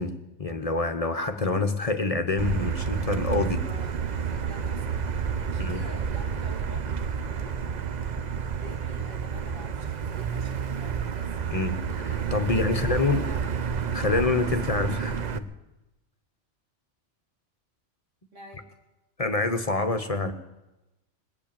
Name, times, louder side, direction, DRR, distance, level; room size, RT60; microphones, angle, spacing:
voice 1, 0.0-3.6 5.6-5.8 11.5-13.2 13.9-15.4 19.2-20.3, left 3 dB, 35° left, 8 dB, 0.8 m, -27 dB
Motor vehicle (road), 2.4-15.4, right 7 dB, 45° right, 0.6 m, -30 dB
voice 2, 3.3-5.1 5.5-7.6 8.4-11.7 12.4-13.6 14.1-15.1 18.3-18.7, equal, 85° right, -1 dB, 3.2 m, -48 dB
19.5 x 8.4 x 8.7 m, 1.0 s
omnidirectional pair, 1.2 m